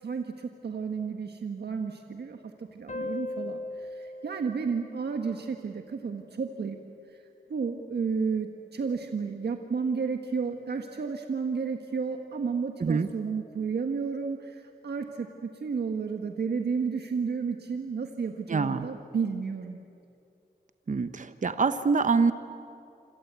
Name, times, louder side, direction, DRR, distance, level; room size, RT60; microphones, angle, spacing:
voice 1, 0.0-6.8 7.1-7.2 7.5-19.8, right 5 dB, 80° right, 4 dB, 1.5 m, -32 dB
sound 1, 2.9-6.0, left 2 dB, 45° left, 1.6 m, -39 dB
voice 2, 18.5-18.9 20.9-22.3, right 4 dB, 50° right, 11 dB, 1.0 m, -25 dB
27.5 x 26.0 x 8.3 m, 2.6 s
cardioid pair, 70°, 17 cm